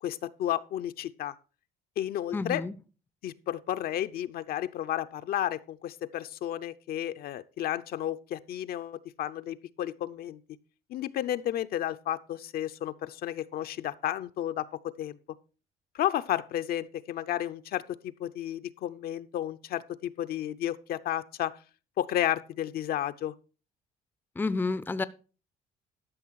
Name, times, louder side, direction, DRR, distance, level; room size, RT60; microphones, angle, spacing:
voice 1, 0.0-1.3 2.0-2.6 3.2-10.4 10.9-15.2 15.9-21.6 22.0-23.3, left 12 dB, 65° left, 0.6 m, -32 dB
voice 2, 2.3-2.7 24.4-25.0, left 3 dB, 10° left, 0.5 m, -30 dB
12.5 x 6.1 x 4.6 m
cardioid pair, 110°, 17 cm